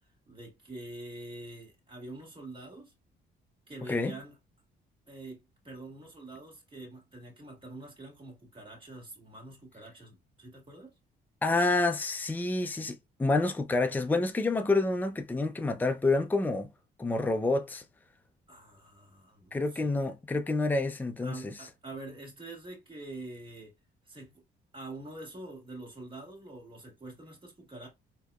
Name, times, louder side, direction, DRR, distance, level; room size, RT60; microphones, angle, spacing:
voice 1, 0.3-2.9 3.7-4.4 5.1-10.9 18.5-19.9 21.2-23.7 24.1-24.4 24.7-27.9, right 2 dB, 25° right, 2.1 m, -45 dB
voice 2, 11.4-16.7 17.0-17.8 19.5-21.4, left 2 dB, 10° left, 0.5 m, -28 dB
4.2 x 2.8 x 2.3 m
cardioid pair, 90°, 20 cm